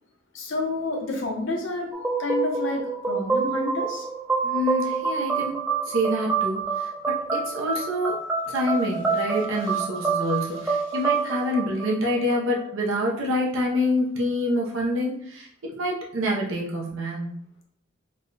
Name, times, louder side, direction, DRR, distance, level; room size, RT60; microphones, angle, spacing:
voice 1, 0.3-1.9 2.2-4.1 9.7-9.8, left 2 dB, 70° left, 1 dB, 0.9 m, -29 dB
sound 1, 1.9-12.6, right 5 dB, 10° right, 0.4 m, -27 dB
voice 2, 4.4-5.6 5.9-15.5 15.8-17.3, left 1 dB, 85° right, -2 dB, 0.7 m, -27 dB
3.4 x 2.2 x 3.9 m, 0.65 s
head